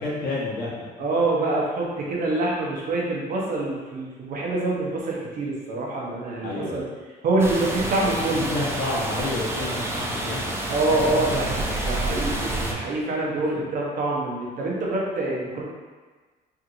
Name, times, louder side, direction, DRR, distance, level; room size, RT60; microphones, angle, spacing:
voice 1, 0.0-0.9 6.4-6.8 8.5-10.5 10.9-11.8 13.5-13.6, left 2 dB, 65° left, -5 dB, 1.1 m, -30 dB
voice 2, 1.0-6.8 7.2-8.5 10.7-15.6, right 2 dB, 55° right, -3 dB, 0.8 m, -25 dB
sound 1, 7.4-12.7, right 1 dB, 15° right, 0.5 m, -28 dB
3.5 x 2.9 x 2.6 m, 1.4 s
cardioid pair, 110°, 17 cm